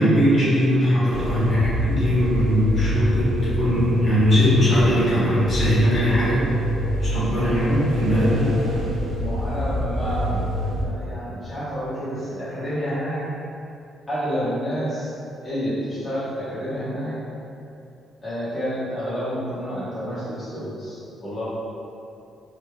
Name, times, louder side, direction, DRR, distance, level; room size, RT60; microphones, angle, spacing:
voice 1, 0.0-6.4 7.0-8.6, equal, 50° left, -10 dB, 1.2 m, -20 dB
sound 1, 1.1-10.8, equal, 90° right, 0.4 m, -27 dB
voice 2, 9.2-13.2 14.1-15.1 15.4-17.2 18.2-21.4, equal, 25° left, -12 dB, 1.0 m, -29 dB
3.1 x 2.9 x 2.2 m, 2.7 s
cardioid pair, 90°, 0 cm